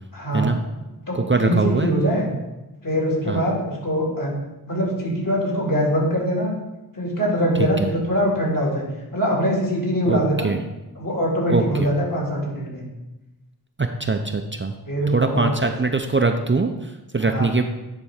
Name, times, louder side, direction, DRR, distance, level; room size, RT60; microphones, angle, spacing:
voice 1, 0.1-0.5 1.1-2.3 2.8-4.3 4.6-6.5 6.9-8.8 9.1-10.5 11.0-12.9 14.9-15.7 17.2-17.6, equal, 55° left, -3 dB, 2.6 m, -23 dB
voice 2, 1.1-1.9 3.3-3.4 7.6-7.9 10.1-10.6 11.5-11.9 13.8-14.7 15.1-17.6, right 3 dB, 30° right, 5 dB, 0.5 m, -22 dB
9.8 x 3.4 x 4.9 m, 1.0 s
wide cardioid pair, 45°, 40 cm